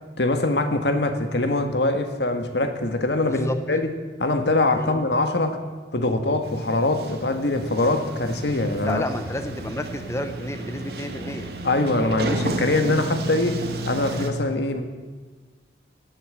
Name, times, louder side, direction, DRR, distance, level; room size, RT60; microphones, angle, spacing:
voice 1, 0.2-3.9 4.2-5.6 5.9-9.0 11.6-14.8, left 2 dB, 75° left, 7 dB, 1.6 m, -23 dB
voice 2, 3.2-3.6 4.8-5.0 8.8-11.5, left 1 dB, 15° left, 8 dB, 0.7 m, -31 dB
Sliding door, 6.4-14.3, right 2 dB, 65° right, 1.7 m, -32 dB
17.5 x 8.7 x 8.1 m, 1.4 s
head